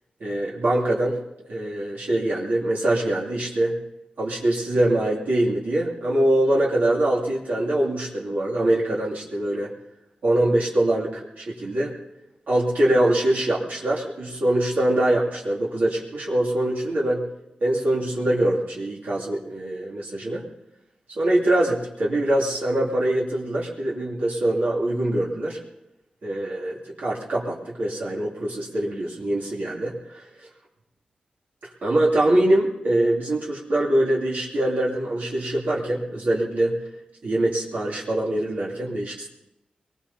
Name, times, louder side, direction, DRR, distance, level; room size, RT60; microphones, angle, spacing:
voice 1, 0.2-1.2 1.5-3.8 4.2-9.7 10.2-11.9 12.5-17.2 17.6-20.4 21.2-25.6 26.2-30.5 31.6-36.8 37.2-39.3, right 1 dB, 75° right, -5 dB, 2.7 m, -23 dB
23.5 x 21.0 x 2.8 m, 0.90 s
wide cardioid pair, 135°, 3 cm